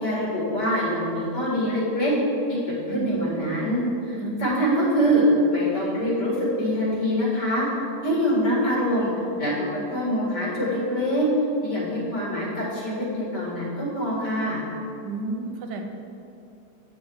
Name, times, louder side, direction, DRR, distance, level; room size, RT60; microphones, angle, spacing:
voice 1, 0.0-2.1 2.5-3.8 4.1-7.7 8.0-9.1 9.4-11.3 11.6-14.6, equal, 80° left, -6 dB, 2.8 m, -24 dB
voice 2, 2.9-3.2 4.2-4.5 6.0-6.1 15.0-15.8, right 4 dB, 80° right, 4 dB, 1.4 m, -31 dB
9.3 x 4.8 x 4.6 m, 2.7 s
omnidirectional pair, 1.8 m